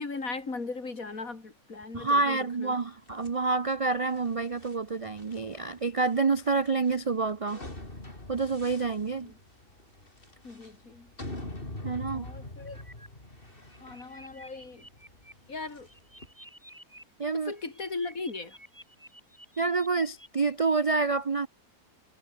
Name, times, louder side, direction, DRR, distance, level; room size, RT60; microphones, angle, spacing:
voice 1, 0.0-2.7 9.2-9.3 10.4-11.1 12.1-12.8 13.8-14.9 15.5-15.9 17.3-18.6, left 3 dB, 65° left, 3.8 m, -38 dB
voice 2, 1.9-7.6 8.3-9.3 11.8-12.3 17.2-17.5 19.6-21.5, right 4 dB, 45° right, 0.4 m, -28 dB
sound 1, 3.1-16.3, left 1 dB, 35° left, 5.5 m, -45 dB
sound 2, 12.7-13.1 13.5-15.3 15.6-17.0 17.3-20.3, equal, 10° right, 7.1 m, -52 dB
omnidirectional pair, 1.6 m